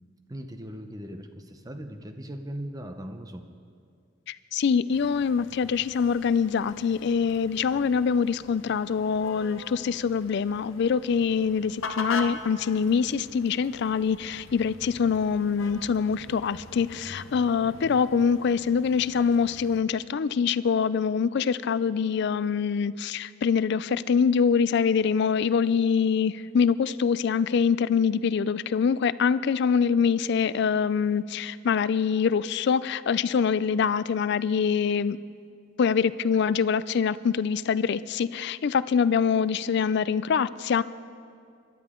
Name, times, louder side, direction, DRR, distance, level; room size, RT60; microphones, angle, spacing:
voice 1, 0.3-3.5, equal, 20° right, 7 dB, 0.7 m, -39 dB
voice 2, 4.3-35.2 35.8-40.8, left 6 dB, 55° left, 17 dB, 0.3 m, -24 dB
sound 1, 4.9-19.8, left 4 dB, 70° left, 0.8 m, -42 dB
23.5 x 12.0 x 3.7 m, 2.3 s
head